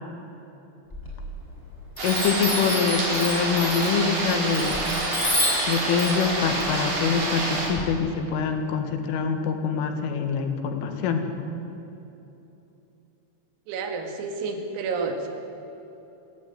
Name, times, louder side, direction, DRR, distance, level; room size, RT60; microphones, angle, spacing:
Chime, 0.9-1.6 2.0-7.8, left 1 dB, 5° left, 6.9 m, -30 dB
voice 1, 2.0-4.8 5.7-11.3, left 6 dB, 75° left, 6 dB, 4.3 m, -25 dB
sound 1, 2.0-7.7, right 2 dB, 50° right, 5.7 m, -27 dB
voice 2, 13.7-15.3, right 4 dB, 85° right, 4 dB, 4.8 m, -30 dB
30.0 x 12.5 x 9.4 m, 3.0 s
omnidirectional pair, 5.9 m